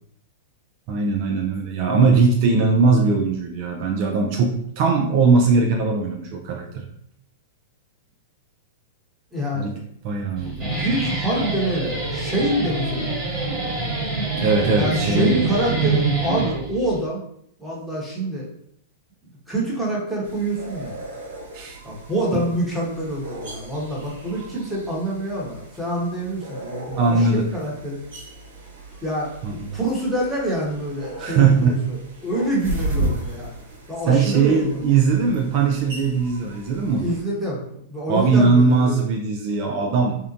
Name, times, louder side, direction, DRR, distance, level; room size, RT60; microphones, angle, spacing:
voice 1, 0.9-6.9 9.5-9.7 10.0-10.7 14.3-15.8 21.5-21.8 22.3-22.4 26.9-27.5 29.4-29.7 31.2-31.8 34.1-37.1 38.1-40.2, right 4 dB, 50° right, 1 dB, 0.4 m, -20 dB
voice 2, 9.3-9.8 10.4-13.1 14.7-17.2 17.6-18.5 19.5-21.0 21.8-28.0 29.0-29.3 29.7-33.5 33.9-35.0 37.0-37.6 37.9-39.0, right 1 dB, ahead, -7 dB, 1.0 m, -26 dB
Guitar, 10.4-17.0, right 3 dB, 20° right, 1.5 m, -26 dB
Kookaburra up close and personal, 20.2-37.2, right 1 dB, 80° right, 1.1 m, -35 dB
2.7 x 2.1 x 2.5 m, 0.70 s
hypercardioid pair, 120°, 0 cm